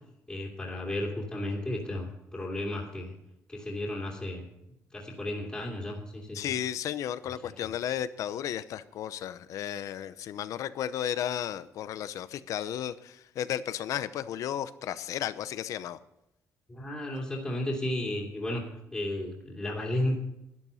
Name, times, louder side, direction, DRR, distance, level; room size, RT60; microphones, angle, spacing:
voice 1, 0.3-3.1 3.5-4.5 4.9-6.5 7.2-7.3 16.7-18.6 18.9-20.2, left 1 dB, 15° left, -3 dB, 2.6 m, -33 dB
voice 2, 6.3-16.0, left 10 dB, 75° left, 15 dB, 0.7 m, -34 dB
12.0 x 11.0 x 5.6 m, 0.86 s
cardioid pair, 145°, 6 cm